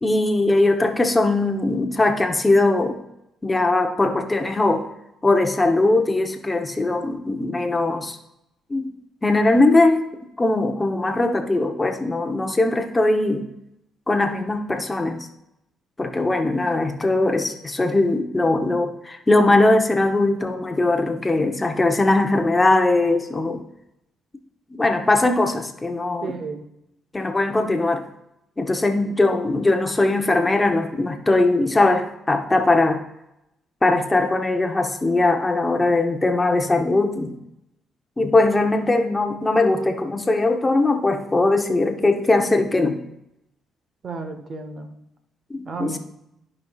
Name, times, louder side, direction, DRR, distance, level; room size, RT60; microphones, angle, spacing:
voice 1, 0.0-3.0 3.4-4.9 5.2-8.2 8.7-8.9 9.2-10.0 10.4-13.5 14.1-15.3 16.0-23.6 24.8-26.3 27.1-28.0 28.6-33.0 33.8-37.4 38.2-43.0 45.5-46.0, left 2 dB, 20° left, 6 dB, 0.8 m, -20 dB
voice 2, 26.2-26.6 44.0-44.9 45.7-46.0, right 4 dB, 50° right, 7 dB, 1.0 m, -32 dB
13.5 x 5.4 x 2.4 m, 0.84 s
cardioid pair, 90°, 0 cm